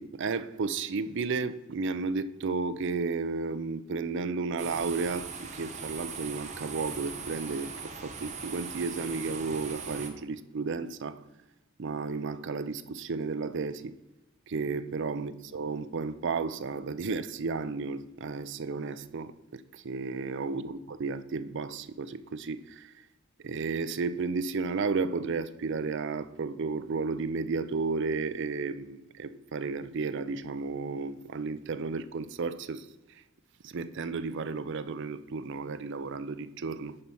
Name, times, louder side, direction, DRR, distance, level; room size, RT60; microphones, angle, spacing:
voice 1, 0.0-11.2 11.8-13.9 14.5-22.9 23.4-32.9 33.6-37.0, right 4 dB, 60° right, 0.5 m, -33 dB
sound 1, 4.6-10.1, right 5 dB, 35° right, 1.1 m, -40 dB
10.5 x 4.3 x 5.4 m
head